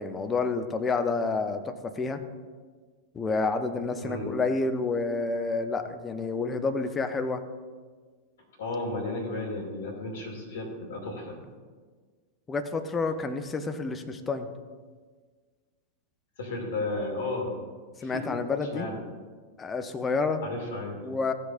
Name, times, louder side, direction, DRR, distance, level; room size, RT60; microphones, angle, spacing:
voice 1, 0.0-2.2 3.1-7.4 12.5-14.5 18.0-18.9 19.6-20.4 21.0-21.3, left 4 dB, 20° left, 7 dB, 0.7 m, -29 dB
voice 2, 4.0-4.3 8.6-11.4 16.4-17.6 18.0-18.4 18.7-19.0 20.4-21.0, left 2 dB, 60° left, -1 dB, 2.5 m, -33 dB
15.0 x 8.0 x 2.6 m, 1.5 s
figure-of-eight pair, 90°, 0 cm